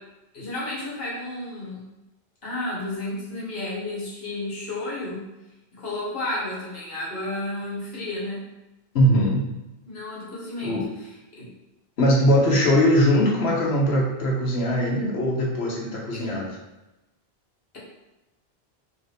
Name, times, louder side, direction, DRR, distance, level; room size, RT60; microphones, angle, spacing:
voice 1, 0.3-1.8 2.4-5.3 5.7-8.4 9.8-11.1 11.4-11.5 16.1-16.2, left 2 dB, 65° left, -6 dB, 1.4 m, -32 dB
voice 2, 8.9-9.5 10.6-10.9 12.0-16.5, equal, 90° left, -3 dB, 1.1 m, -21 dB
3.1 x 2.6 x 3.3 m, 1.0 s
omnidirectional pair, 1.0 m